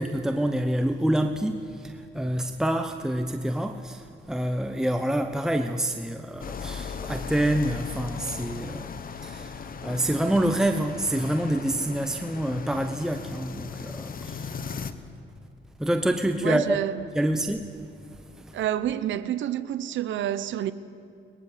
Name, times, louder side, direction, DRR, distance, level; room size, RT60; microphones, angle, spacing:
voice 1, 0.0-8.9 9.2-14.5 15.8-16.8 17.1-17.9 18.4-18.6, right 1 dB, 5° right, 1.0 m, -27 dB
sound 1, 6.4-14.9, left 6 dB, 45° left, 1.3 m, -37 dB
voice 2, 16.4-17.1 18.5-20.7, right 11 dB, 70° right, 0.9 m, -28 dB
22.5 x 20.5 x 7.4 m
cardioid pair, 90°, 20 cm